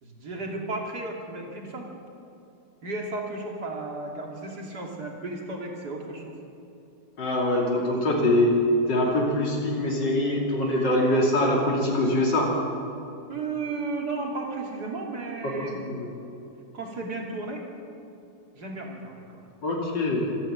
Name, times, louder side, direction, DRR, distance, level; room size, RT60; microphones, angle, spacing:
voice 1, 0.0-1.9 2.8-6.3 13.3-15.8 16.7-17.6 18.5-19.2, right 3 dB, 65° right, 0 dB, 3.3 m, -34 dB
voice 2, 7.2-8.5 8.9-12.5 15.7-16.1 19.6-20.3, left 1 dB, 90° left, -2 dB, 3.5 m, -23 dB
26.5 x 11.0 x 9.0 m, 2.8 s
omnidirectional pair, 1.9 m